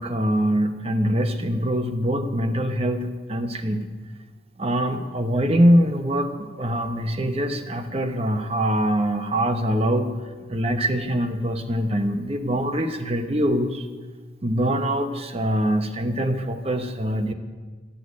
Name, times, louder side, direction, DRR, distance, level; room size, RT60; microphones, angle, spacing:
voice 1, 0.0-3.8 4.6-10.2 10.5-13.9 14.4-17.3, equal, 30° right, 7 dB, 1.0 m, -23 dB
13.0 x 8.4 x 9.4 m, 1.4 s
head